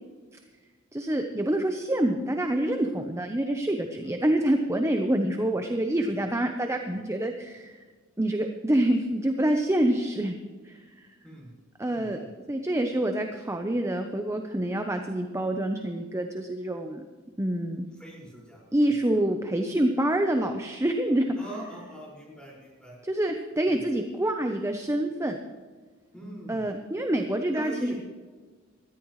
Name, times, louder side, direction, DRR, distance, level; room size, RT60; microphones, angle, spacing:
voice 1, 0.9-7.7 8.2-10.4 10.6-11.1 11.8-12.2 12.5-17.0 17.4-17.8 18.7-21.4 23.0-25.4 26.5-27.9, right 1 dB, 15° right, 4 dB, 0.8 m, -26 dB
voice 2, 11.2-11.5 11.9-12.3 17.9-19.0 21.4-23.0 23.7-23.8 26.1-26.7 27.5-27.9, equal, 5° left, -4 dB, 5.5 m, -42 dB
20.5 x 14.0 x 3.2 m, 1.5 s
head